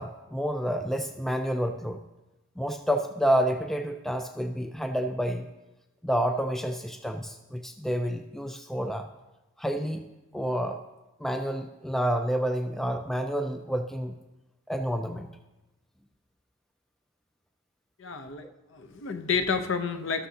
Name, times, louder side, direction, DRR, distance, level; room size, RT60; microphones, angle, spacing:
voice 1, 0.0-2.0 2.6-5.5 6.0-9.1 9.6-10.8 11.2-14.2 14.7-15.3 18.4-18.5, equal, ahead, 6 dB, 0.3 m, -29 dB
voice 2, 18.0-18.4 18.7-20.3, left 5 dB, 55° left, 7 dB, 0.7 m, -30 dB
13.0 x 12.5 x 2.8 m, 1.0 s
head